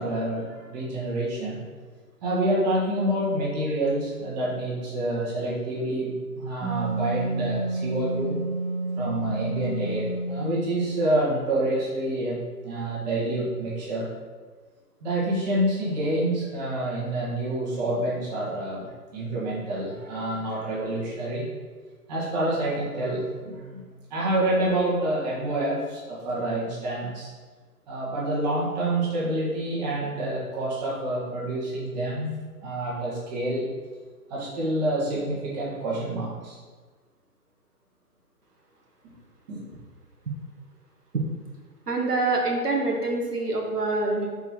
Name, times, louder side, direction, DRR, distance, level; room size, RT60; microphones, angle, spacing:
voice 1, 0.0-1.6 2.2-8.4 9.0-14.1 15.0-21.5 22.1-23.8 24.1-27.3 27.9-32.3 32.6-33.7 34.3-36.6 39.0-39.1 39.5-39.6, right 1 dB, 25° right, -6 dB, 1.6 m, -27 dB
Wind instrument woodwind instrument, 6.6-11.0, right 2 dB, 10° left, 1.8 m, -30 dB
voice 2, 41.9-44.3, right 2 dB, 75° right, -1 dB, 1.4 m, -25 dB
5.7 x 4.5 x 4.4 m, 1.4 s
figure-of-eight pair, 135°, 47 cm